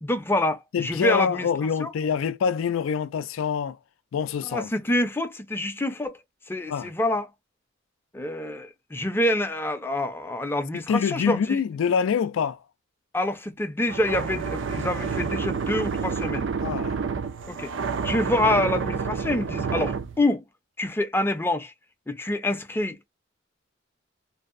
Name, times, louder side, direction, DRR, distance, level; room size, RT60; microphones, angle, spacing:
voice 1, 0.0-1.5 1.8-1.9 4.5-6.2 6.5-7.3 8.1-11.6 13.1-16.5 17.5-17.7 18.0-20.4 20.8-21.7 22.1-23.1, left 1 dB, 10° left, 0.4 m, -26 dB
voice 2, 0.7-3.8 4.1-4.7 6.7-6.9 10.9-12.6 16.6-16.9, left 6 dB, 90° left, 0.3 m, -25 dB
sound 1, 13.9-20.2, right 5 dB, 65° right, 0.4 m, -29 dB
2.6 x 2.0 x 2.4 m
head